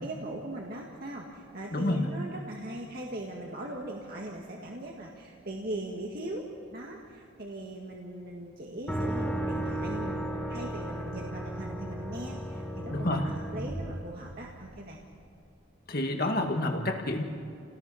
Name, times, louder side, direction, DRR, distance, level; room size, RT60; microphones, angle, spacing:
voice 1, 0.0-15.0, right 1 dB, 45° right, -1 dB, 2.0 m, -40 dB
voice 2, 1.7-2.1 12.9-13.3 15.9-17.2, left 1 dB, 45° left, 3 dB, 2.1 m, -28 dB
sound 1, 8.9-14.8, right 1 dB, 5° left, 2.1 m, -35 dB
30.0 x 18.5 x 5.9 m, 2.5 s
head